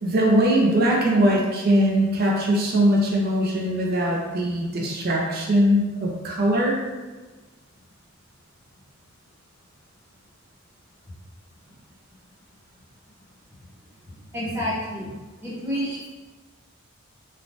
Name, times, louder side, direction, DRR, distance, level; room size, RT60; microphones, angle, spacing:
voice 1, 0.0-6.8, right 1 dB, 45° right, -2 dB, 0.4 m, -21 dB
voice 2, 14.1-15.1 15.4-16.1, equal, 10° right, -8 dB, 0.7 m, -29 dB
3.1 x 2.1 x 2.5 m, 1.2 s
head